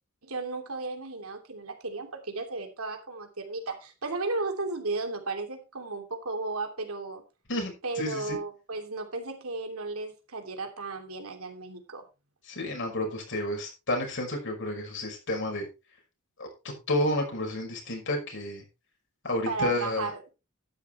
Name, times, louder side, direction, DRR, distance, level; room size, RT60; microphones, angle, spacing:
voice 1, 0.2-7.2 7.8-12.0 19.4-20.3, right 3 dB, 75° right, 4 dB, 3.0 m, -34 dB
voice 2, 7.5-8.4 12.5-15.6 16.4-16.5 16.9-18.6 19.2-20.1, left 1 dB, 60° left, 2 dB, 5.7 m, -30 dB
12.0 x 11.0 x 3.4 m, 0.28 s
head